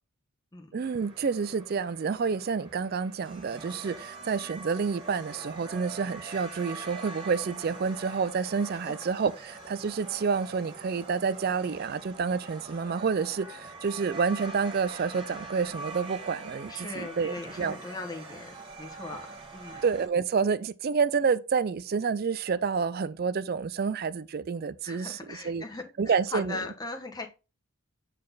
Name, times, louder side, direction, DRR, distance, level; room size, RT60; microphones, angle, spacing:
voice 1, 0.7-17.8 19.8-25.6 26.0-26.6, right 5 dB, 45° right, 0.3 m, -29 dB
sound 1, 0.8-20.1, right 3 dB, 20° right, 1.4 m, -44 dB
voice 2, 16.7-18.5 18.8-19.8 24.8-27.3, left 3 dB, 15° left, 1.1 m, -39 dB
8.5 x 4.1 x 3.9 m
head